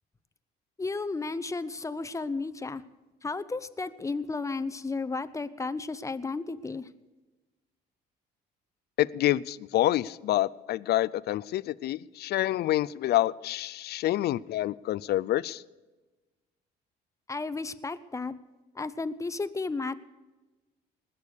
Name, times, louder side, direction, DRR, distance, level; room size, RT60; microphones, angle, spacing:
voice 1, 0.8-2.8 3.2-6.9 17.3-18.3 18.7-19.9, left 3 dB, 15° left, 13 dB, 0.7 m, -33 dB
voice 2, 9.0-15.6, left 14 dB, 65° left, 19 dB, 0.4 m, -27 dB
20.0 x 6.9 x 6.5 m, 1.2 s
supercardioid pair, 80°, 18 cm